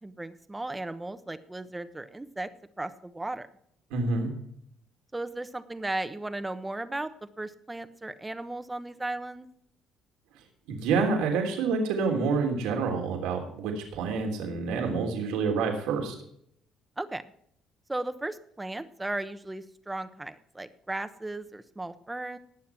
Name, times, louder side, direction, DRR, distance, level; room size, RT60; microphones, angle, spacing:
voice 1, 0.0-2.5 2.8-3.5 5.1-7.1 7.4-9.5 17.0-17.2 17.9-22.4, right 2 dB, 10° right, 11 dB, 1.1 m, -36 dB
voice 2, 3.9-4.3 10.7-16.1, right 4 dB, 90° right, 2 dB, 3.2 m, -28 dB
19.5 x 7.3 x 4.6 m, 0.69 s
cardioid pair, 100°, 0 cm